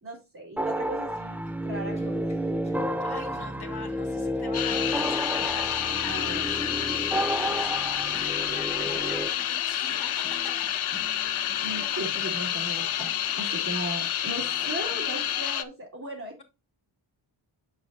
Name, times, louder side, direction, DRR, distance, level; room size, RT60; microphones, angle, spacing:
voice 1, 0.0-2.4 6.0-6.4 11.6-16.4, right 1 dB, 35° right, -4 dB, 2.3 m, -37 dB
sound 1, 0.6-9.3, equal, 5° right, 0.4 m, -30 dB
sound 2, 0.8-15.5, left 1 dB, 10° left, 1.9 m, -51 dB
voice 2, 3.0-10.5 14.6-15.2, left 4 dB, 55° left, 6 dB, 1.8 m, -44 dB
sound 3, 4.5-15.6, left 11 dB, 80° left, 0.7 m, -29 dB
8.3 x 6.6 x 2.6 m, 0.27 s
wide cardioid pair, 95°, 48 cm